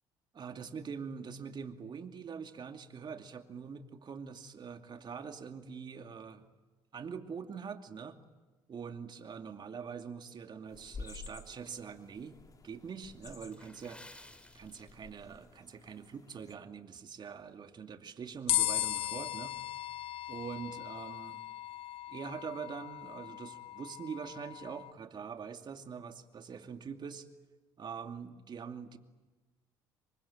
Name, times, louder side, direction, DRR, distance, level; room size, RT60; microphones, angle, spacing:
voice 1, 0.3-6.5 6.9-8.2 8.7-12.4 12.6-14.0 14.5-19.6 20.3-21.4 22.1-27.3 27.8-29.0, right 6 dB, 40° right, 6 dB, 2.6 m, -44 dB
sound 1, 10.7-16.6, left 4 dB, 35° left, 3.0 m, -51 dB
Water / Splash splatter, 13.5-15.4 15.7-15.9 16.5-16.7 17.2-17.3, left 1 dB, 10° left, 3.7 m, -55 dB
sound 2, 18.5-24.9, left 14 dB, 60° left, 0.8 m, -37 dB
28.0 x 24.0 x 8.9 m, 1.2 s
hypercardioid pair, 60°, 11 cm